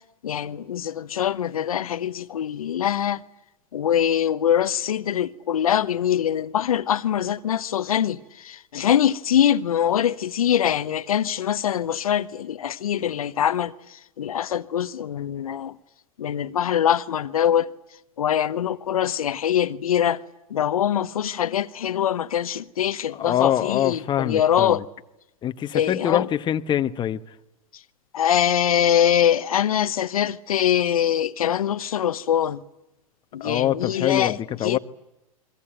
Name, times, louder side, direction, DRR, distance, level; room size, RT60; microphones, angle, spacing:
voice 1, 0.2-3.2 3.7-13.7 14.2-15.7 16.2-17.7 18.2-20.2 20.5-24.8 25.7-26.3 28.1-32.6 33.3-34.4 34.6-34.8, left 10 dB, 80° left, 0.9 m, -23 dB
voice 2, 23.1-24.8 25.4-27.2 33.4-34.8, left 11 dB, 25° left, 1.1 m, -24 dB
29.5 x 23.0 x 8.9 m
hypercardioid pair, 105°, 18 cm